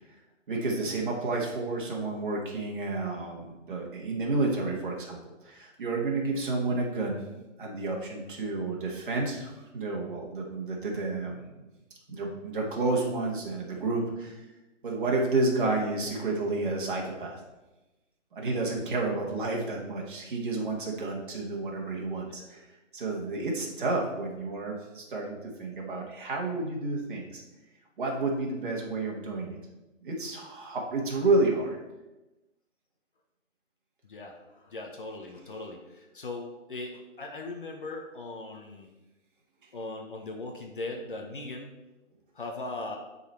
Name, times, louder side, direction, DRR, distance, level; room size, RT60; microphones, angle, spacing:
voice 1, 0.5-7.2 7.6-11.5 12.1-14.4 14.8-17.4 18.3-22.6 22.9-27.4 28.0-29.6 30.0-31.8, right 3 dB, 40° right, -2 dB, 1.6 m, -30 dB
voice 2, 34.0-38.9 39.7-41.8 42.3-43.0, left 2 dB, 45° left, 2 dB, 0.8 m, -39 dB
9.9 x 4.1 x 4.3 m, 1.1 s
hypercardioid pair, 180°, 38 cm